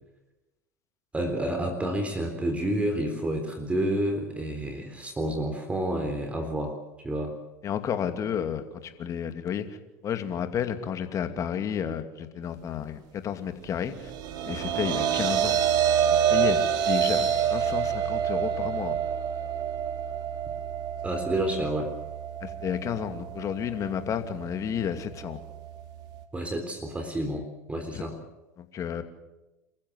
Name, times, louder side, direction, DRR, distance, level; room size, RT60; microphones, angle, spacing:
voice 1, 1.1-6.7 7.0-7.3 21.0-21.9 26.3-28.1, right 1 dB, 15° right, 6 dB, 3.8 m, -29 dB
voice 2, 7.6-9.8 10.0-14.1 14.4-15.6 16.3-19.0 22.4-25.4 27.9-28.1 28.6-29.0, left 8 dB, 40° left, 8 dB, 2.6 m, -31 dB
sound 1, 13.9-26.2, right 8 dB, 60° right, 2.6 m, -28 dB
27.5 x 15.0 x 8.1 m, 1.0 s
hypercardioid pair, 85°, 8 cm